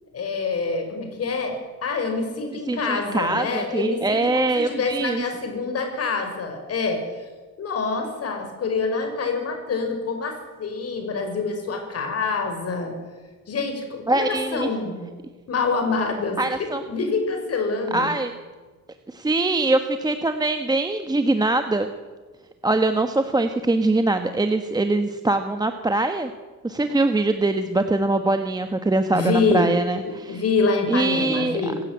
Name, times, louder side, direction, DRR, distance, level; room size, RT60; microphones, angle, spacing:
voice 1, 0.1-7.0 7.6-12.9 13.5-15.1 15.5-18.1 29.1-29.7 30.0-31.8, left 4 dB, 45° left, 5 dB, 6.1 m, -26 dB
voice 2, 2.7-5.2 14.1-14.7 16.4-16.8 17.9-18.3 19.1-21.9 22.6-26.3 26.6-30.4 30.9-31.6, right 2 dB, 10° right, 7 dB, 1.2 m, -23 dB
26.5 x 16.0 x 9.3 m, 1.3 s
cardioid pair, 150°, 32 cm